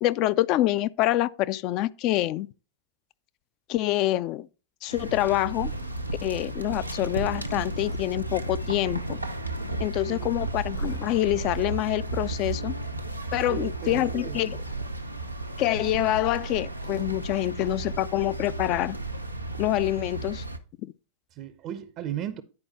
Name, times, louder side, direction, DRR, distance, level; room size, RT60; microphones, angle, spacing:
voice 1, 0.0-2.5 3.7-4.5 4.8-5.7 6.2-9.2 9.8-12.7 13.3-14.6 15.6-19.0 19.6-20.4, left 15 dB, 40° left, 0.3 m, -26 dB
sound 1, 4.9-20.6, right 2 dB, 90° right, 0.6 m, -33 dB
Tools, 7.7-8.0 10.7-11.1 13.8-14.1 16.8-17.1, left 1 dB, 90° left, 4.0 m, -47 dB
voice 2, 13.5-14.4 21.3-22.4, right 10 dB, 40° right, 0.5 m, -35 dB
9.7 x 4.6 x 4.2 m
figure-of-eight pair, 90°, 0 cm